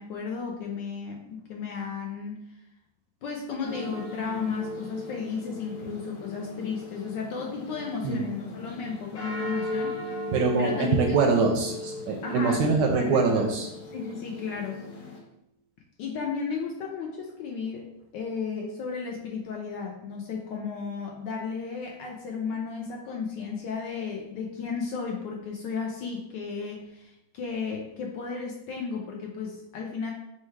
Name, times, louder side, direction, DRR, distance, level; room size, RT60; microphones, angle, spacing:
voice 1, 0.0-2.4 3.2-10.2 10.6-11.2 12.2-13.5 13.9-14.8 16.0-17.8 18.1-30.1, left 5 dB, 75° left, 0 dB, 1.1 m, -34 dB
sound 1, 3.6-15.2, left 1 dB, 60° left, 1.2 m, -37 dB
voice 2, 10.3-13.7, right 4 dB, 75° right, 2 dB, 1.0 m, -24 dB
4.5 x 2.2 x 4.5 m, 0.85 s
omnidirectional pair, 2.3 m